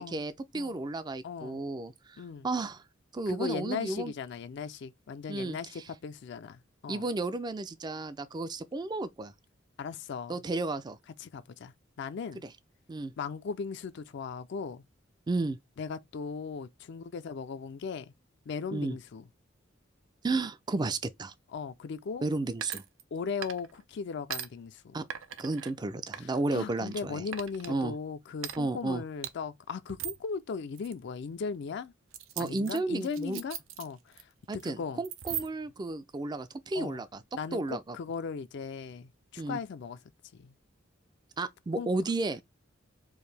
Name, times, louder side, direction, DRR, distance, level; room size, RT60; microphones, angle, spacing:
voice 1, 0.0-2.8 3.1-4.1 5.3-5.8 6.9-9.3 10.3-11.0 12.9-13.1 15.3-15.6 18.7-19.0 20.2-21.3 22.2-22.8 24.9-25.0 25.4-27.2 27.7-27.9 28.6-29.0 32.4-33.4 34.5-37.2 37.5-38.0 39.4-39.6 41.4-42.4, right 2 dB, 20° right, 0.4 m, -33 dB
voice 2, 1.2-1.6 2.2-2.5 3.3-7.1 9.8-10.4 11.2-11.7 12.0-12.4 13.2-14.8 15.8-18.1 18.5-19.2 21.5-22.3 23.1-25.0 26.2-31.9 32.4-35.0 36.7-37.0 37.3-40.0 40.3-40.5 41.8-41.9, left 5 dB, 60° left, 0.4 m, -38 dB
sound 1, 22.6-23.2 23.4-23.8 24.3-24.5 25.1-25.7 26.1-27.0 27.3-27.7 28.4-28.6 29.2-29.3 29.9-30.3 30.8-30.9 32.1-34.2 34.5-34.7 35.0-35.7, right 10 dB, 90° right, 0.6 m, -39 dB
4.7 x 2.6 x 3.3 m
head